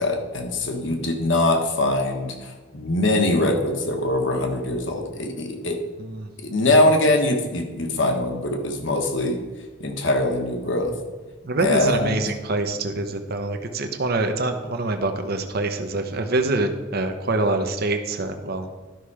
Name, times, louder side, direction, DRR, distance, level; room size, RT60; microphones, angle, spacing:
voice 1, 0.0-5.8 6.4-9.4 9.8-10.9 11.6-12.2, left 2 dB, 65° left, 4 dB, 1.5 m, -22 dB
voice 2, 11.4-18.7, right 2 dB, 50° right, 6 dB, 0.9 m, -25 dB
11.5 x 5.8 x 4.9 m, 1.3 s
head